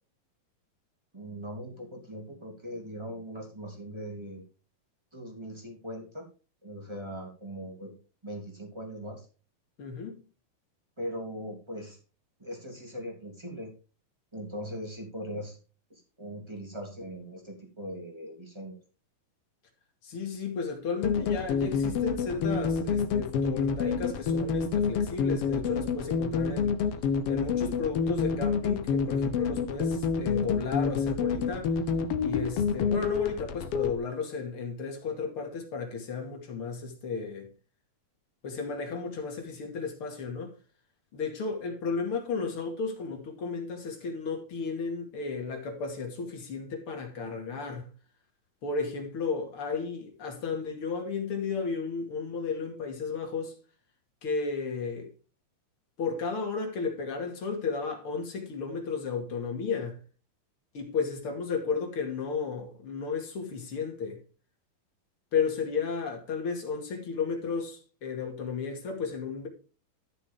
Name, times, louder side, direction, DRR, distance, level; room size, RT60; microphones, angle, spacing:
voice 1, 1.1-4.4 5.1-6.2 6.6-7.9 8.2-9.3 11.0-12.0 12.4-13.7 14.3-15.6 15.9-18.8, equal, 10° right, 2.6 m, -40 dB
voice 2, 9.8-10.2 20.0-26.8 27.3-31.7 32.2-37.5 38.4-40.5 41.1-47.9 48.6-53.6 54.2-55.1 56.0-60.0 60.7-64.2 65.3-69.5, left 5 dB, 45° left, 2.8 m, -33 dB
sound 1, 21.0-33.9, left 6 dB, 85° left, 1.3 m, -28 dB
13.5 x 6.8 x 3.7 m
omnidirectional pair, 4.1 m